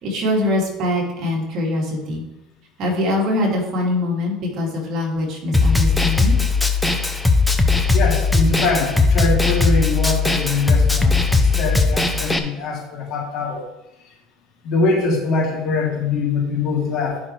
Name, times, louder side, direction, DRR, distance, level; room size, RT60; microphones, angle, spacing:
voice 1, 0.0-2.2 2.8-6.4, left 1 dB, 50° right, -2 dB, 2.7 m, -23 dB
Snare drum, 5.5-12.4, left 3 dB, 5° left, 0.7 m, -18 dB
voice 2, 7.9-13.6 14.6-17.2, left 3 dB, 55° left, -3 dB, 2.9 m, -23 dB
11.0 x 5.7 x 3.3 m, 0.90 s
cardioid pair, 125°, 0 cm